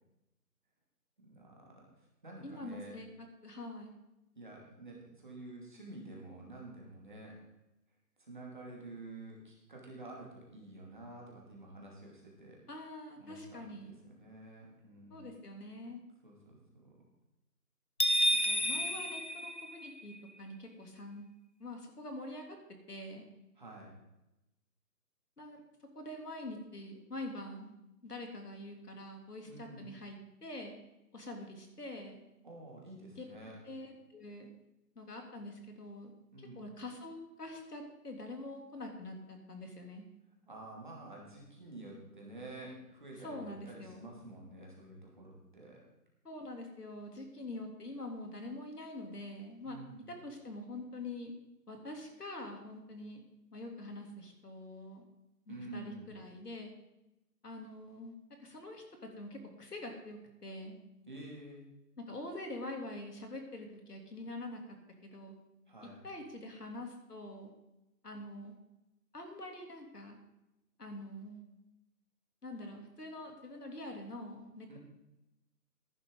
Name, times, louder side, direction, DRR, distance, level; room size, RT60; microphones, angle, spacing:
voice 1, 1.2-3.0 4.4-7.3 8.2-12.6 13.2-15.3 16.2-16.9 18.4-18.9 23.6-23.9 29.4-29.9 32.4-33.6 36.3-36.6 40.5-45.8 49.6-50.1 55.5-56.1 61.1-61.7 65.7-66.0 74.7-74.8, right 2 dB, 30° right, -2 dB, 2.5 m, -49 dB
voice 2, 2.4-3.9 12.7-14.0 15.1-16.0 18.5-21.2 21.6-22.6 22.9-23.3 25.4-25.6 25.9-27.7 28.0-30.7 31.1-32.2 33.2-33.3 33.6-34.5 34.9-36.1 36.4-40.0 43.2-44.0 46.2-49.8 50.1-51.3 51.7-53.2 53.5-55.0 55.5-56.7 57.4-60.8 62.0-64.6 65.0-65.3 66.0-67.5 68.0-68.6 69.1-70.2 70.8-71.4 72.4-74.8, left 1 dB, 65° left, 3 dB, 3.3 m, -45 dB
sound 1, 18.0-20.2, equal, 45° left, 0.5 m, -30 dB
14.5 x 11.0 x 4.0 m, 0.91 s
figure-of-eight pair, 180°, 49 cm